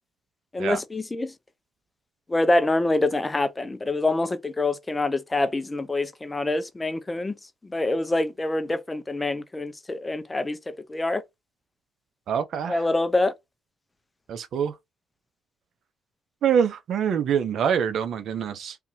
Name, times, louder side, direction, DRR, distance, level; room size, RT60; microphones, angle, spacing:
voice 1, 0.5-1.3 2.3-7.4 7.7-11.2 12.7-13.3, left 2 dB, 20° left, 0.6 m, -25 dB
voice 2, 12.3-12.9 14.3-14.8 16.4-18.8, right 8 dB, 70° right, 0.8 m, -25 dB
3.6 x 2.8 x 2.7 m
cardioid pair, 90°, 0 cm